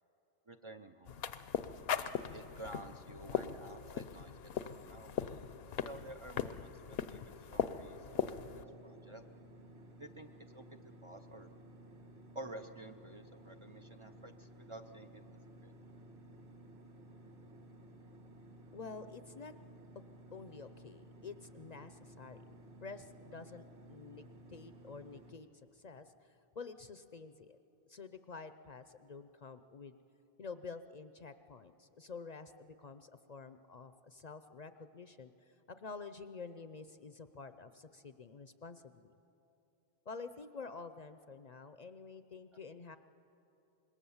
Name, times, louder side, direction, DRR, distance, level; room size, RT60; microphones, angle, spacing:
voice 1, 0.5-1.2 2.3-4.3 4.6-5.1 5.8-8.3 8.5-9.3 9.9-10.6 11.0-11.5 12.3-15.2 15.6-15.7, right 1 dB, 35° right, 6 dB, 0.6 m, -51 dB
sound 1, 1.1-8.6, left 8 dB, 70° left, 0.9 m, -39 dB
sound 2, 8.1-25.3, right 1 dB, 85° right, 2.0 m, -56 dB
voice 2, 18.7-19.5 20.3-25.5 25.7-27.6 27.9-29.9 30.4-39.1 40.1-43.0, left 4 dB, 45° left, 10 dB, 0.6 m, -49 dB
26.0 x 21.0 x 7.1 m, 3.0 s
omnidirectional pair, 1.0 m